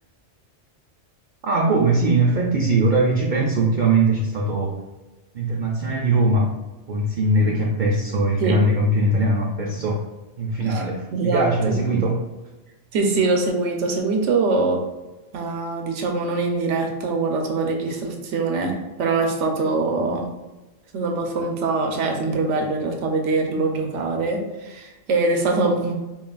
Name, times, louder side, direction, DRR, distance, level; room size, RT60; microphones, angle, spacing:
voice 1, 1.4-4.7 5.3-6.5 6.9-10.0 10.4-12.2, right 2 dB, 60° right, -1 dB, 0.5 m, -21 dB
voice 2, 11.1-12.0 12.9-14.8 15.3-18.7 19.0-20.3 20.9-25.9, right 3 dB, 85° right, 2 dB, 0.9 m, -23 dB
5.5 x 2.5 x 2.2 m, 1.1 s
omnidirectional pair, 1.2 m